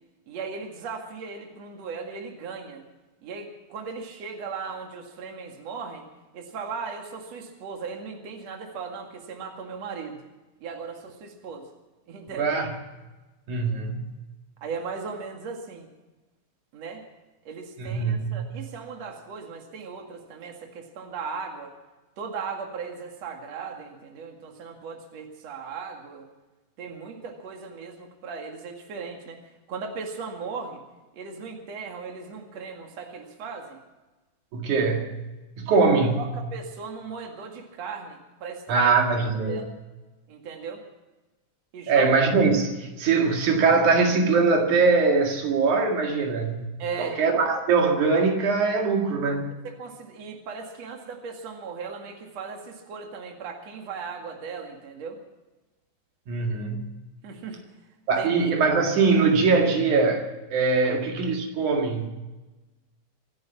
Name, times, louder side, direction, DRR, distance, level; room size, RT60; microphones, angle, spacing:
voice 1, 0.3-2.8 3.2-6.1 6.3-10.2 10.6-11.7 12.1-12.6 14.6-15.9 16.7-17.0 17.4-21.7 22.2-26.3 26.8-29.4 29.7-30.8 31.1-33.8 36.2-38.9 39.5-39.7 40.3-40.8 41.7-42.1 46.8-47.2 49.8-55.2 57.2-57.6 58.2-58.3, right 5 dB, 60° right, 2 dB, 3.2 m, -37 dB
voice 2, 12.4-12.8 13.5-14.1 17.8-18.4 34.5-35.2 35.6-36.3 38.7-39.6 41.9-46.7 47.0-49.6 56.3-57.0 58.1-62.1, right 4 dB, 85° right, 2 dB, 3.5 m, -22 dB
26.0 x 9.6 x 5.8 m, 1.1 s
omnidirectional pair, 3.4 m